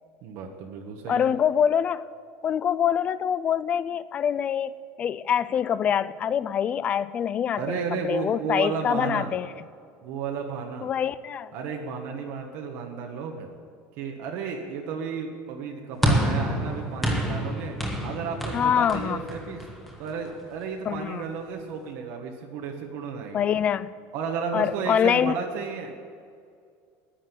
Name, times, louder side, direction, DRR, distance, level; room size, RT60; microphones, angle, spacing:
voice 1, 0.2-1.3 7.6-9.4 10.0-10.9 11.5-13.5 14.0-17.8 18.0-19.6 20.0-23.5 24.1-25.9, right 5 dB, 50° right, 2 dB, 1.4 m, -33 dB
voice 2, 1.1-2.0 2.4-9.5 10.8-11.5 18.5-19.2 20.9-21.2 23.3-23.9 24.5-25.4, left 8 dB, 20° left, 17 dB, 0.3 m, -25 dB
sound 1, 16.0-20.5, equal, 5° left, 1.4 m, -28 dB
10.0 x 10.0 x 9.7 m, 2.3 s
cardioid pair, 175°, 6 cm